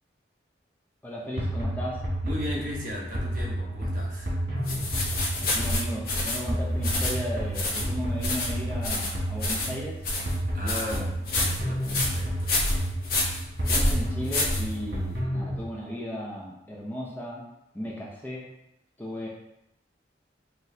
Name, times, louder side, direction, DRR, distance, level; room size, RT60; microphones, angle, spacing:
voice 1, 1.0-2.0 5.4-10.0 10.6-11.1 13.7-17.4 17.7-18.5 19.0-19.3, equal, 10° left, -4 dB, 0.5 m, -35 dB
sound 1, 1.4-15.6, equal, 70° right, 1.5 m, -31 dB
voice 2, 2.2-4.4 10.5-11.0 11.3-12.7, left 1 dB, 45° right, -3 dB, 0.9 m, -37 dB
sound 2, 4.6-15.1, left 2 dB, 55° left, 0.8 m, -29 dB
5.9 x 2.5 x 2.6 m, 0.83 s
head